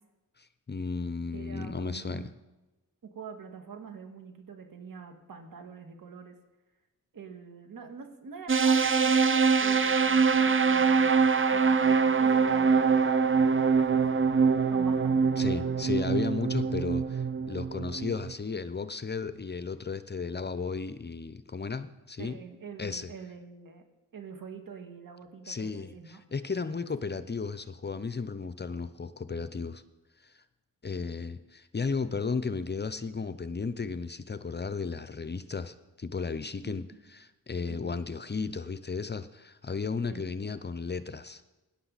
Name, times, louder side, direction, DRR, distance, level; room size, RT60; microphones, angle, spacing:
voice 1, 0.4-2.3 15.4-22.4 22.8-23.1 25.4-29.8 30.2-30.4 30.8-36.9 37.2-41.4, left 4 dB, 30° left, 13 dB, 0.7 m, -34 dB
voice 2, 1.3-2.3 3.0-6.4 7.1-11.2 11.5-13.1 13.5-14.5 14.7-15.9 22.2-23.8 24.1-26.2 26.6-26.9 36.6-36.8 37.7-37.9 40.1-40.2, right 5 dB, 65° right, 5 dB, 2.0 m, -46 dB
sound 1, 8.5-18.3, right 5 dB, 35° right, 0.8 m, -24 dB
17.0 x 10.5 x 4.1 m, 1.1 s
cardioid pair, 50°, 36 cm